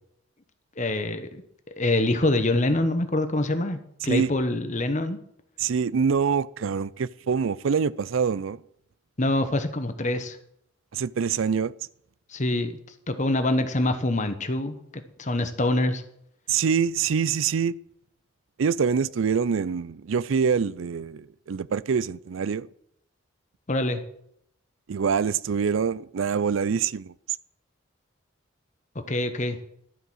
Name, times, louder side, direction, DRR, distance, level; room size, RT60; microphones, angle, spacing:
voice 1, 0.8-1.4 1.8-5.2 9.2-10.4 12.3-12.7 13.1-14.8 15.2-16.0 23.7-24.0 29.1-29.6, left 2 dB, 40° left, 1.1 m, -25 dB
voice 2, 4.0-4.3 5.6-8.6 10.9-11.7 16.5-17.7 18.6-22.7 24.9-27.1, right 6 dB, 75° right, 0.4 m, -25 dB
12.5 x 7.8 x 6.4 m
head